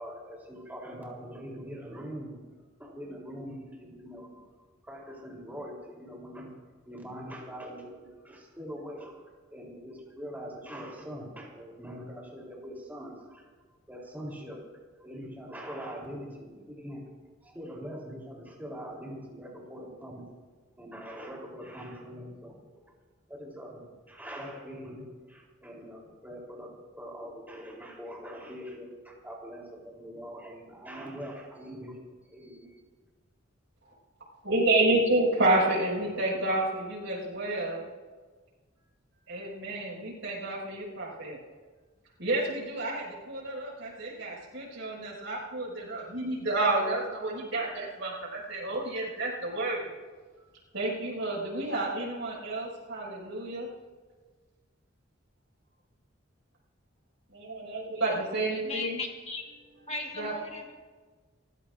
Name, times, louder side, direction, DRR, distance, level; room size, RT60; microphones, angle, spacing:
voice 1, 0.0-2.4 2.8-4.5 4.8-6.5 6.9-9.2 9.5-13.5 13.9-14.6 15.0-17.0 17.4-20.3 20.8-22.9 23.3-26.7 27.0-32.0 32.2-32.8, equal, 10° right, -2 dB, 3.6 m, -43 dB
voice 2, 34.4-37.8 39.3-41.4 42.2-49.9 50.7-53.7 57.3-59.0 60.2-60.4, right 2 dB, 70° right, -3 dB, 5.8 m, -30 dB
voice 3, 58.5-59.4 59.9-60.7, left 3 dB, 30° left, 1 dB, 1.6 m, -37 dB
29.0 x 16.0 x 2.6 m, 1.4 s
head